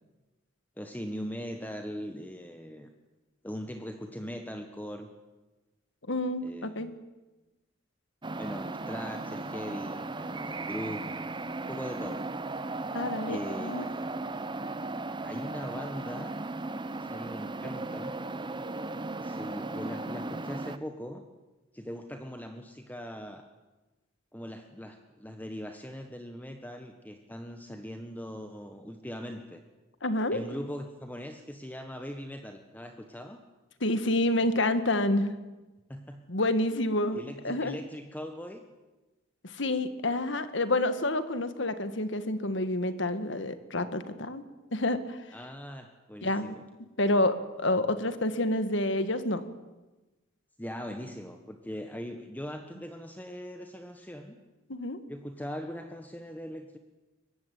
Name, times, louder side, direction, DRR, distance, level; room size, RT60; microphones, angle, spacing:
voice 1, 0.8-2.9 3.4-5.1 6.4-6.9 8.4-11.1 11.7-12.3 13.2-14.2 15.2-16.3 17.0-18.2 19.2-21.3 21.7-23.5 24.3-29.6 30.3-33.4 35.9-36.2 37.1-38.6 45.3-46.6 50.6-54.4 55.1-56.8, equal, 10° left, 5 dB, 1.4 m, -40 dB
voice 2, 6.1-6.9 12.9-13.9 30.0-30.4 33.8-35.3 36.3-37.2 37.4-37.8 39.4-44.4 44.7-45.2 46.2-46.6 47.0-49.4 54.7-55.0, left 1 dB, 65° left, 11 dB, 1.9 m, -28 dB
sound 1, 8.2-20.8, right 2 dB, 25° right, 0.9 m, -36 dB
23.0 x 20.5 x 9.6 m, 1.1 s
head